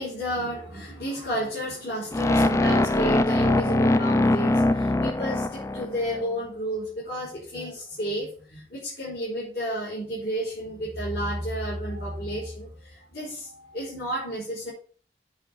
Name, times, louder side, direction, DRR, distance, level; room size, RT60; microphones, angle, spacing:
voice 1, 0.0-14.7, equal, 60° left, -8 dB, 3.8 m, -31 dB
sound 1, 2.1-6.2, left 2 dB, 15° left, 0.4 m, -22 dB
8.0 x 4.3 x 7.0 m, 0.43 s
head